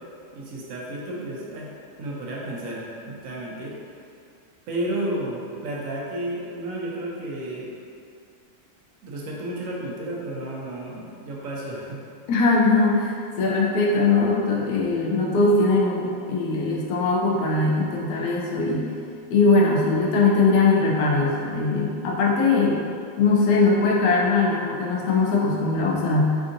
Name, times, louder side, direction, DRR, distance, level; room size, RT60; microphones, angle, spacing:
voice 1, 0.3-1.7 2.0-3.7 4.7-7.7 9.0-12.0, right 1 dB, 70° right, -4 dB, 1.0 m, -32 dB
voice 2, 12.3-18.9 19.3-22.8 23.2-26.4, left 3 dB, 90° left, -3 dB, 1.1 m, -21 dB
3.6 x 2.6 x 2.5 m, 2.4 s
omnidirectional pair, 1.5 m